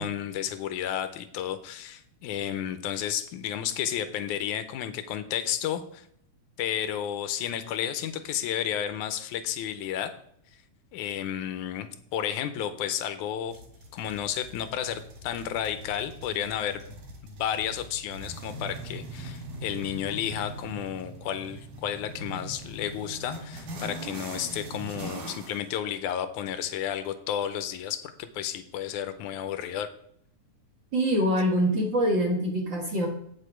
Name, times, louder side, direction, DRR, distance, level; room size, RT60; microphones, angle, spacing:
voice 1, 0.0-6.0 6.6-10.1 10.9-13.6 13.9-17.0 17.2-29.9, left 10 dB, 80° left, 11 dB, 2.1 m, -32 dB
sound 1, 13.5-25.6, right 1 dB, 80° right, 3.1 m, -41 dB
voice 2, 30.9-33.1, equal, 50° right, -1 dB, 1.6 m, -24 dB
8.5 x 6.5 x 5.0 m, 0.70 s
omnidirectional pair, 3.6 m